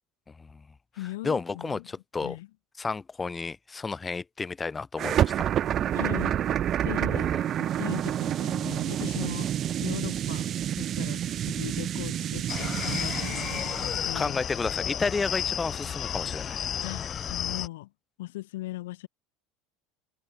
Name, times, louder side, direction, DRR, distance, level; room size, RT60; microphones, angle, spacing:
voice 1, 0.3-0.6 1.2-2.4 2.8-5.5 7.1-7.4 14.1-16.6, left 4 dB, 20° left, 6.1 m, -32 dB
voice 2, 0.9-1.9 2.2-2.5 5.9-6.4 6.8-7.3 7.8-9.5 9.8-10.5 10.8-14.4 16.8-17.9 18.2-19.1, left 18 dB, 90° left, 6.4 m, -38 dB
sound 1, 5.0-14.1, right 10 dB, 45° right, 2.8 m, -28 dB
sound 2, 12.5-17.7, left 8 dB, 35° left, 5.5 m, -32 dB
supercardioid pair, 110°, 0 cm